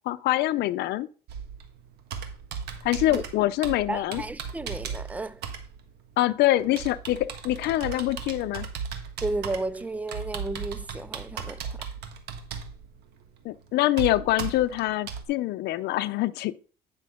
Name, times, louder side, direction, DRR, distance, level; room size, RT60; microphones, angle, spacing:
voice 1, 0.1-1.1 2.8-4.2 6.2-8.7 13.4-16.5, left 15 dB, 80° left, 0.6 m, -25 dB
Computer keyboard, 1.3-15.2, right 6 dB, 75° right, 1.5 m, -37 dB
voice 2, 3.9-5.5 9.2-11.9, right 2 dB, 10° right, 0.4 m, -33 dB
9.8 x 6.0 x 3.7 m
cardioid pair, 110°, 17 cm